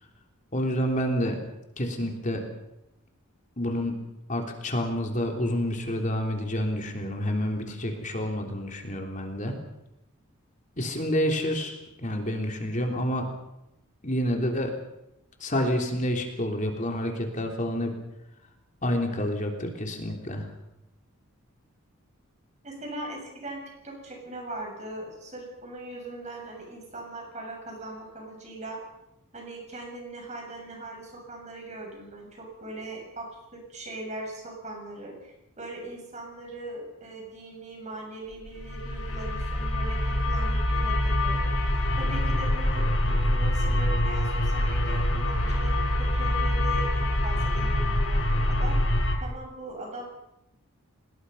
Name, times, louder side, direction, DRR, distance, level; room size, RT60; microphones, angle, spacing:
voice 1, 0.5-1.4 1.8-2.4 3.6-4.0 4.3-9.6 10.8-13.3 14.0-14.7 15.4-17.9 18.8-20.5, equal, 35° left, 2 dB, 3.4 m, -28 dB
voice 2, 22.6-28.8 29.3-48.9 49.2-50.1, right 2 dB, 30° right, 1 dB, 7.3 m, -40 dB
sound 1, 38.5-49.1, left 1 dB, 65° left, 4.9 m, -25 dB
28.0 x 20.0 x 5.7 m, 0.89 s
head